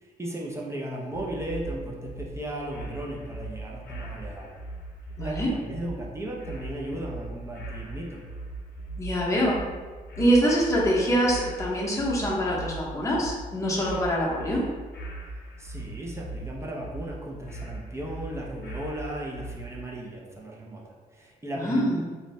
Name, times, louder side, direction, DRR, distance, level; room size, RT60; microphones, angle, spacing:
voice 1, 0.0-4.6 5.2-8.2 15.6-21.8, right 1 dB, 15° right, -2 dB, 0.4 m, -36 dB
sound 1, 1.1-19.8, right 2 dB, 75° left, 0.6 m, -40 dB
voice 2, 5.2-5.5 9.0-9.6 10.2-14.6 21.6-22.0, equal, 20° left, -5 dB, 0.7 m, -24 dB
2.6 x 2.1 x 3.1 m, 1.5 s
cardioid pair, 95°, 16 cm